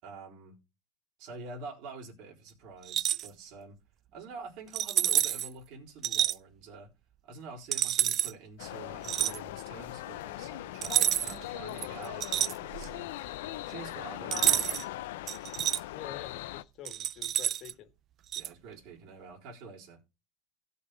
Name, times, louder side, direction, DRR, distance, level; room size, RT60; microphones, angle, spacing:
voice 1, 0.0-0.6 1.2-3.8 4.1-6.9 7.2-13.1 13.7-14.8 18.3-20.0, right 4 dB, 60° right, 4.0 m, -47 dB
sound 1, 2.8-3.3 4.7-5.5 6.0-6.4 7.7-8.3 9.0-9.4 10.8-11.4 11.8-13.0 14.3-14.8 15.3-15.8 16.8-17.7 18.3-18.5, right 12 dB, 40° right, 0.4 m, -28 dB
sound 2, 8.6-16.6, left 15 dB, 90° left, 0.5 m, -40 dB
voice 2, 15.9-17.9, left 11 dB, 50° left, 1.9 m, -47 dB
16.5 x 5.6 x 3.9 m
supercardioid pair, 130°, 0 cm